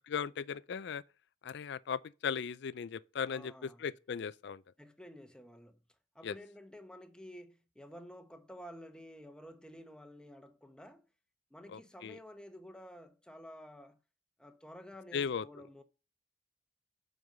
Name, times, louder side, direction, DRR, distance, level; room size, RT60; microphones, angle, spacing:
voice 1, 0.1-1.0 1.4-4.6 6.2-6.3 11.7-12.2 15.1-15.4, left 6 dB, 60° left, 0.4 m, -37 dB
voice 2, 3.3-3.9 4.8-5.8 6.1-11.1 11.5-14.0 14.4-15.8, equal, 5° left, 1.0 m, -51 dB
7.9 x 5.4 x 6.6 m
head